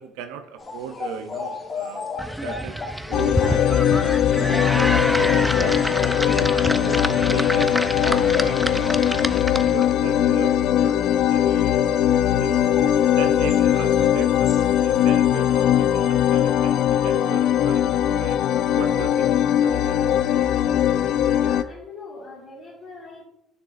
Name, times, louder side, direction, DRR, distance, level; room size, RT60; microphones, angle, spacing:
voice 1, 0.0-2.1 2.4-2.8 3.1-3.9 4.3-5.8 6.3-12.6 13.2-18.4 18.7-20.0, right 8 dB, 90° right, 7 dB, 0.6 m, -37 dB
sound 1, 0.6-15.1, left 4 dB, 35° left, 1.0 m, -39 dB
sound 2, 2.2-9.9, equal, ahead, 0.4 m, -27 dB
sound 3, 3.1-21.6, left 10 dB, 70° left, 0.4 m, -20 dB
voice 2, 21.4-23.2, left 3 dB, 50° left, -6 dB, 1.9 m, -42 dB
9.4 x 6.7 x 2.5 m, 0.77 s
supercardioid pair, 85°, 0 cm